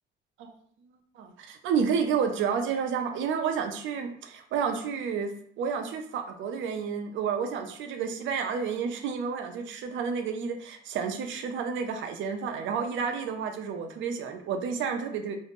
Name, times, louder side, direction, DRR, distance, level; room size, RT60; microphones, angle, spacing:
voice 1, 1.2-5.3 5.6-15.4, right 6 dB, 75° right, 6 dB, 0.4 m, -30 dB
2.5 x 2.0 x 2.9 m, 0.63 s
cardioid pair, 90°, 20 cm